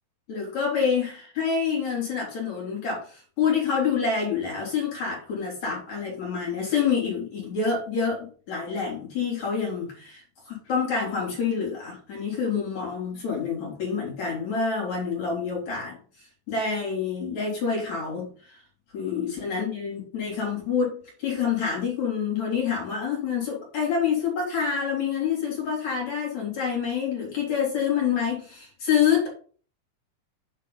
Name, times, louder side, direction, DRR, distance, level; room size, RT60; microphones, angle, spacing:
voice 1, 0.3-18.6 18.9-29.3, left 6 dB, 40° left, -2 dB, 3.6 m, -27 dB
8.5 x 4.1 x 5.4 m, 0.41 s
omnidirectional pair, 5.6 m